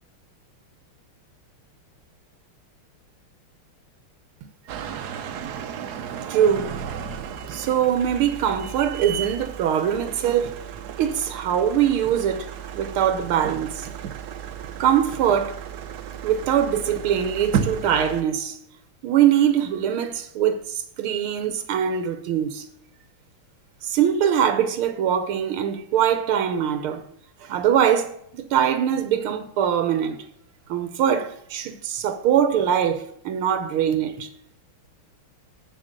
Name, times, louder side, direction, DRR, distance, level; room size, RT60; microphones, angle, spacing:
sound 1, 4.7-18.2, right 8 dB, 60° right, 1.1 m, -33 dB
voice 1, 6.3-6.7 7.5-10.5 11.0-12.5 12.8-13.9 14.8-15.6 16.2-18.6 19.0-22.7 23.8-27.0 27.4-30.3 30.7-34.3, right 9 dB, 85° right, 1.8 m, -22 dB
8.0 x 6.7 x 6.5 m
omnidirectional pair, 2.3 m